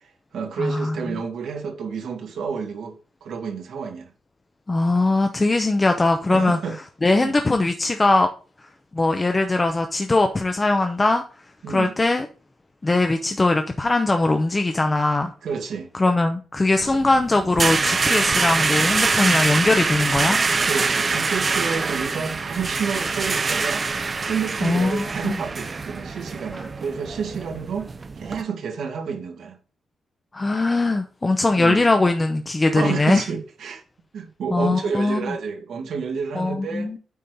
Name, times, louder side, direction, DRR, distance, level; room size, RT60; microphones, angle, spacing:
voice 1, 0.0-4.1 6.3-6.8 7.2-7.4 11.6-11.9 15.4-15.9 20.6-23.9 24.3-29.6 31.5-31.8 32.7-33.8 34.1-36.9, right 6 dB, 65° right, 2.2 m, -30 dB
voice 2, 0.6-1.2 4.7-6.6 7.0-8.3 8.6-11.2 11.7-12.3 12.8-15.3 15.9-20.4 24.6-25.4 26.5-26.7 30.3-33.2 34.5-35.4 36.3-37.0, left 2 dB, 15° left, 0.7 m, -21 dB
sound 1, 16.8-28.4, right 4 dB, 25° right, 0.6 m, -24 dB
9.2 x 4.3 x 5.0 m
wide cardioid pair, 175°, 0 cm